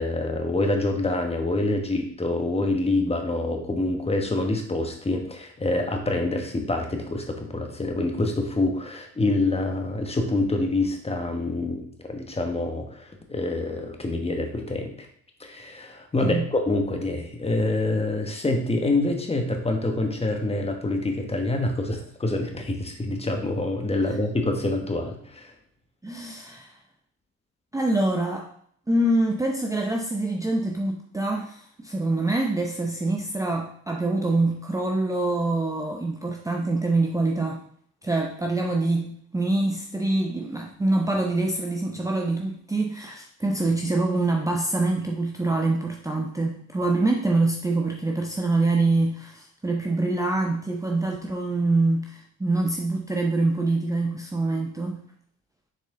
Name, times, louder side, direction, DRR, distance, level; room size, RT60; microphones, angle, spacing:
voice 1, 0.0-14.9 15.4-25.5, left 2 dB, 20° left, 3 dB, 1.2 m, -26 dB
voice 2, 26.0-26.7 27.7-28.5 28.9-37.6 38.0-55.0, right 2 dB, 10° right, 1 dB, 0.6 m, -25 dB
6.6 x 4.2 x 3.7 m, 0.64 s
cardioid pair, 90°, 30 cm